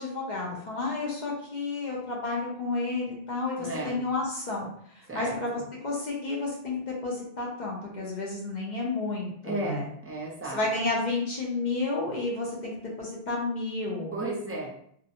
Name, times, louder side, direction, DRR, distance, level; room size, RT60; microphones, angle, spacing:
voice 1, 0.0-9.9 10.5-14.2, left 3 dB, 50° left, -3 dB, 0.7 m, -31 dB
voice 2, 3.6-4.0 5.1-5.6 9.4-10.6 14.1-14.7, right 2 dB, 20° right, -3 dB, 0.4 m, -34 dB
2.5 x 2.1 x 2.8 m, 0.66 s
omnidirectional pair, 1.1 m